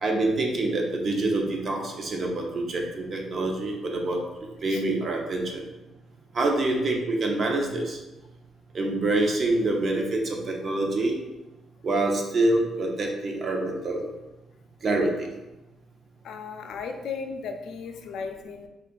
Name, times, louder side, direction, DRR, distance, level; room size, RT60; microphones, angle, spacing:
voice 1, 0.0-4.2 4.6-5.6 6.3-8.0 8.7-11.2 11.8-14.1 14.8-15.3, right 2 dB, 50° right, 1 dB, 0.6 m, -26 dB
voice 2, 16.2-18.7, left 5 dB, 75° left, 5 dB, 0.3 m, -35 dB
2.6 x 2.4 x 3.7 m, 1.0 s
cardioid pair, 90°, 0 cm